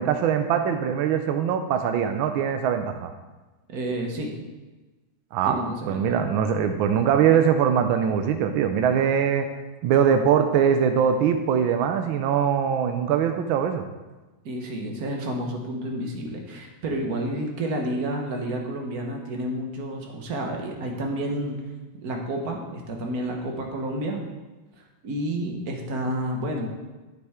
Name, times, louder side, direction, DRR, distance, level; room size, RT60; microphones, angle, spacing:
voice 1, 0.0-3.1 5.3-9.5 9.8-13.8, right 8 dB, 80° right, 7 dB, 1.4 m, -22 dB
voice 2, 3.7-4.3 5.4-6.2 14.4-21.6 22.0-24.2 25.0-26.7, right 1 dB, 50° right, 2 dB, 1.6 m, -30 dB
9.5 x 7.7 x 3.6 m, 1.2 s
omnidirectional pair, 2.2 m